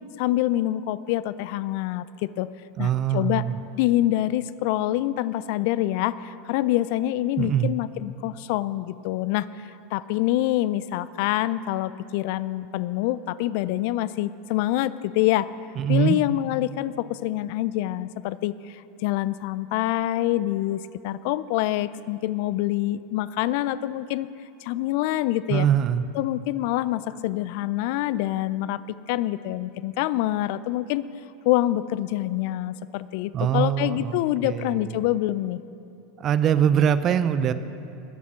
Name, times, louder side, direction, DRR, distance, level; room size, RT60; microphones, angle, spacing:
voice 1, 0.2-2.5 2.8-3.4 3.8-15.5 15.9-24.3 24.6-25.7 26.1-31.0 31.5-35.6, left 15 dB, 60° left, 17 dB, 0.4 m, -26 dB
voice 2, 2.8-3.6 7.4-7.7 15.8-16.2 25.5-26.1 33.3-34.9 36.2-37.5, right 9 dB, 40° right, 12 dB, 0.6 m, -23 dB
19.5 x 7.2 x 6.3 m, 2.7 s
hypercardioid pair, 90°, 0 cm